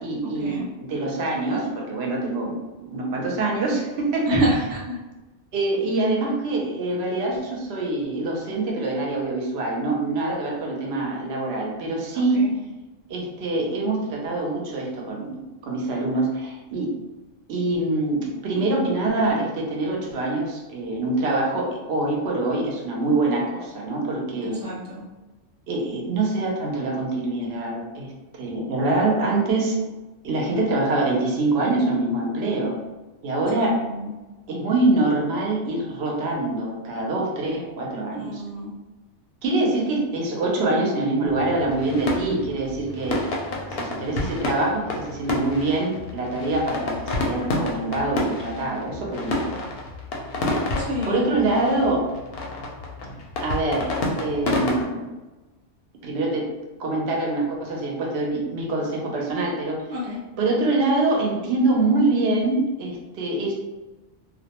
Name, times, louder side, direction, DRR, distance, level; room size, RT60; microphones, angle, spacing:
voice 1, 0.0-4.4 5.5-12.4 13.1-15.4 15.6-16.9 17.5-24.6 25.7-29.8 30.2-32.8 33.2-33.8 34.5-38.4 39.4-43.2 43.7-49.6 51.0-52.1 53.4-53.9 54.2-55.1 56.0-56.5 56.8-60.0 60.4-63.5, right 2 dB, 65° right, -1 dB, 0.8 m, -25 dB
voice 2, 4.3-5.0 12.1-12.6 18.5-18.8 24.4-25.0 33.6-34.1 38.2-38.7 50.8-51.3 59.9-60.2, equal, 25° right, -6 dB, 0.4 m, -28 dB
sound 1, 41.3-54.9, left 2 dB, 65° left, 0.7 m, -29 dB
2.3 x 2.1 x 2.8 m, 1.1 s
omnidirectional pair, 1.2 m